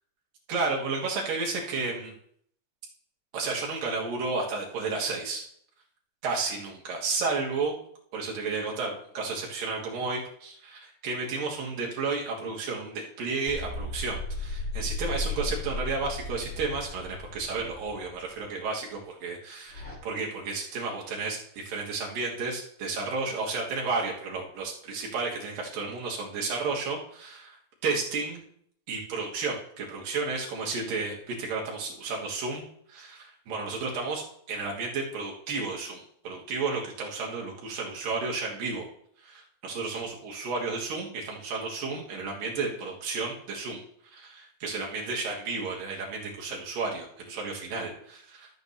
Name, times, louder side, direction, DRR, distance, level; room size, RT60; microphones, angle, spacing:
voice 1, 0.5-2.1 3.3-5.4 6.2-7.8 8.1-27.6 27.8-28.4 28.9-38.9 39.2-43.8 44.1-48.5, right 4 dB, 70° right, -2 dB, 3.2 m, -32 dB
sound 1, 13.5-18.4 19.7-20.0, left 2 dB, 30° left, 1.2 m, -35 dB
13.5 x 7.9 x 2.8 m, 0.66 s
omnidirectional pair, 4.2 m